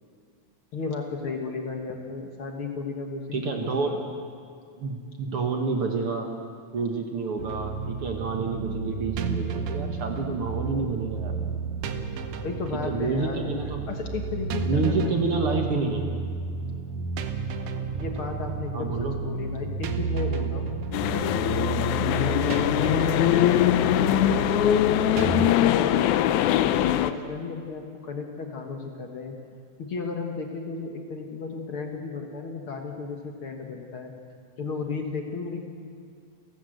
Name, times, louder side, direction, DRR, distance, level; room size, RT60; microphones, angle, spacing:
voice 1, 0.7-4.0 12.4-13.5 13.9-15.5 17.9-20.7 21.1-24.5 24.9-29.4 29.8-34.1 34.6-35.6, left 4 dB, 50° left, 3 dB, 2.0 m, -34 dB
voice 2, 3.3-4.0 4.8-6.3 6.7-11.3 12.7-13.8 14.7-16.1 18.7-19.2, right 4 dB, 55° right, 3 dB, 2.1 m, -28 dB
sound 1, 7.4-25.5, right 4 dB, 85° right, 2.5 m, -31 dB
sound 2, 20.9-27.1, left 12 dB, 80° left, 2.1 m, -22 dB
30.0 x 11.5 x 7.9 m, 2.3 s
omnidirectional pair, 3.4 m